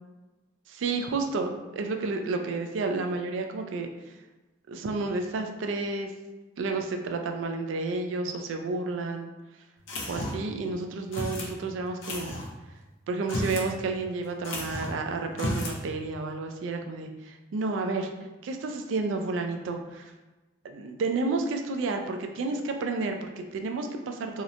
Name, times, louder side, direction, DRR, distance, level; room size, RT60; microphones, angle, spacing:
voice 1, 0.7-3.9 4.7-6.1 6.6-9.3 10.1-12.3 13.1-18.1 18.4-20.0 20.6-24.4, right 3 dB, 85° right, 4 dB, 0.3 m, -31 dB
sound 1, 9.9-10.5 11.1-11.5 12.0-12.5 13.2-13.7 14.0-14.1 14.4-15.0 15.3-15.8, left 1 dB, 80° left, 0.5 m, -32 dB
2.8 x 2.0 x 2.5 m, 1.1 s
head